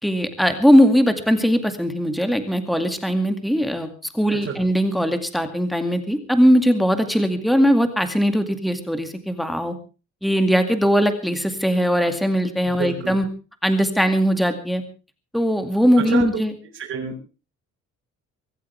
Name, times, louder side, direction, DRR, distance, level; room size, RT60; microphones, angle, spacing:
voice 1, 0.0-9.7 10.2-13.3 13.6-14.8 15.3-16.5, equal, ahead, 7 dB, 2.2 m, -20 dB
voice 2, 12.7-13.2 16.0-16.3 16.8-17.3, right 8 dB, 50° right, -3 dB, 5.3 m, -28 dB
24.5 x 14.0 x 3.4 m, 0.34 s
cardioid pair, 155°, 29 cm